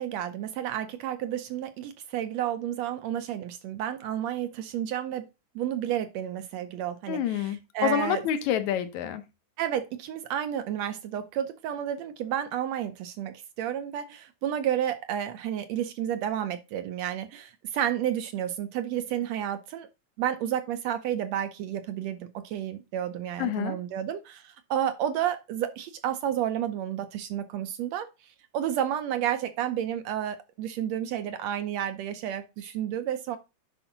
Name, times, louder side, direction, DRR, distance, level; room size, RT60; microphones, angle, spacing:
voice 1, 0.0-5.3 5.6-8.2 9.6-19.9 20.2-33.4, right 10 dB, 75° right, 1.7 m, -31 dB
voice 2, 7.1-9.2 23.4-23.8, left 10 dB, 75° left, 2.2 m, -28 dB
10.0 x 4.9 x 4.0 m
omnidirectional pair, 3.5 m